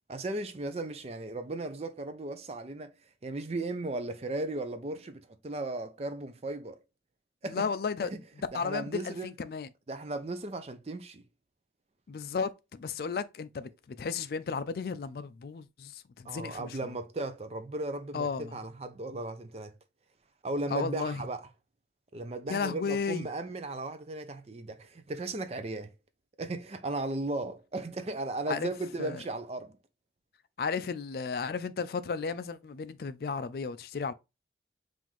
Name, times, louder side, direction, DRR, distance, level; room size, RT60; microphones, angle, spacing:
voice 1, 0.1-2.9 3.2-6.8 7.4-7.7 8.0-8.1 8.5-9.3 9.9-11.2 16.2-19.8 20.4-21.4 22.1-25.9 26.4-29.8, right 2 dB, 35° right, 0.4 m, -36 dB
voice 2, 7.4-8.1 8.5-9.7 12.1-12.5 12.8-16.8 18.1-18.5 20.7-21.2 22.5-23.3 28.5-28.7 29.0-29.2 30.6-34.1, left 5 dB, 55° left, 0.3 m, -34 dB
5.5 x 2.5 x 3.0 m
head